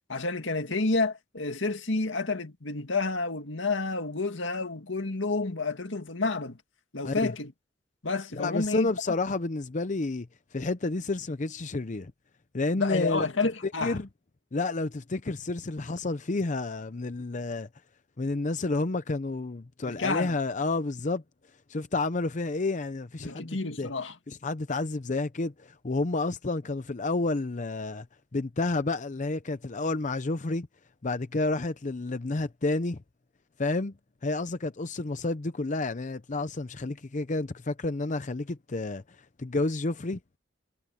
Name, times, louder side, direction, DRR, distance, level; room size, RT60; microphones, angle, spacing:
voice 1, 0.1-6.6 6.9-7.5 8.0-8.9 12.8-14.0 19.9-20.3 23.2-24.2, left 3 dB, 85° left, 2.0 m, -29 dB
voice 2, 8.3-10.3 10.5-12.1 12.5-13.3 13.8-14.1 14.5-17.7 18.2-21.2 21.7-23.9 24.3-28.1 28.3-30.7 31.0-33.0 33.6-33.9 34.2-39.0 39.4-40.2, left 2 dB, 40° left, 0.7 m, -30 dB
head